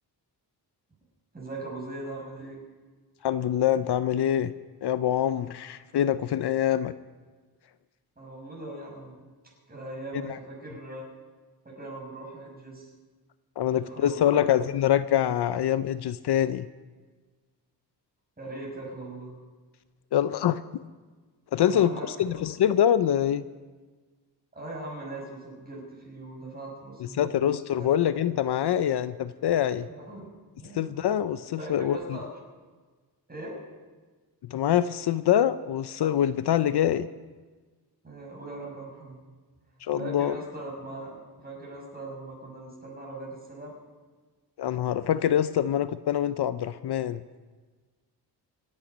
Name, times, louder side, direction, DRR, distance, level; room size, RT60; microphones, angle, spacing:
voice 1, 1.3-2.6 8.2-9.2 9.7-11.0 11.6-12.9 13.6-14.4 18.4-19.4 21.6-22.4 24.5-27.4 27.8-27.9 29.9-30.9 31.6-32.3 33.3-33.6 38.0-39.3 39.9-43.7, right 2 dB, 20° right, -2 dB, 6.1 m, -40 dB
voice 2, 3.2-4.5 4.8-6.9 10.3-10.4 13.6-16.7 20.1-20.6 21.5-23.4 27.0-29.9 30.7-32.2 34.4-37.1 39.8-40.3 44.6-47.2, left 10 dB, 65° left, 14 dB, 0.6 m, -25 dB
27.0 x 9.0 x 5.2 m, 1.4 s
wide cardioid pair, 110°, 43 cm